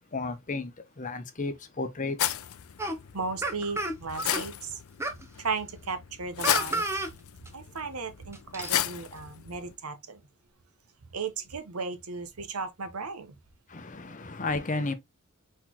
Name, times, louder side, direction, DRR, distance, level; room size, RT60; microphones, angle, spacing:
voice 1, 0.1-0.7 1.0-2.3 13.7-14.9, left 3 dB, 35° left, 0.8 m, -32 dB
sound 1, 2.2-9.7, left 11 dB, 70° left, 0.5 m, -34 dB
sound 2, 2.8-3.0 3.4-4.4 5.0-5.2 6.4-7.1 7.5-7.6 8.3-8.8, right 2 dB, 10° right, 0.8 m, -31 dB
voice 2, 3.1-4.8 5.4-6.8 7.5-10.2 11.1-13.3, right 4 dB, 85° right, 0.9 m, -35 dB
4.3 x 4.0 x 2.9 m
head